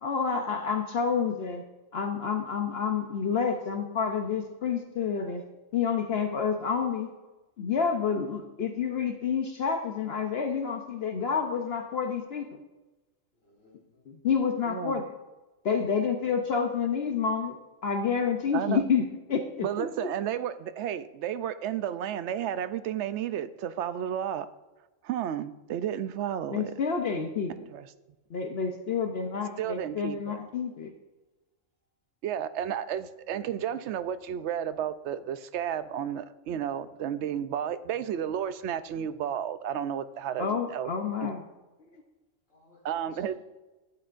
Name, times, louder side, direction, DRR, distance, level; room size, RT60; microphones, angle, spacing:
voice 1, 0.0-1.6 1.9-5.4 5.7-7.1 7.6-12.5 14.1-15.1 15.6-17.6 17.8-19.9 26.5-27.5 28.3-30.9 40.4-41.4 41.9-42.0, left 6 dB, 60° left, 5 dB, 0.9 m, -29 dB
voice 2, 13.4-14.1 42.5-43.3, left 2 dB, 85° left, -3 dB, 3.7 m, -60 dB
voice 3, 14.7-15.0 18.5-18.8 19.6-24.5 25.0-26.7 27.7-27.9 29.6-30.4 32.2-40.9 41.2-41.3 42.8-43.3, right 9 dB, 70° right, 13 dB, 0.8 m, -32 dB
12.0 x 8.7 x 2.5 m, 1.1 s
omnidirectional pair, 1.3 m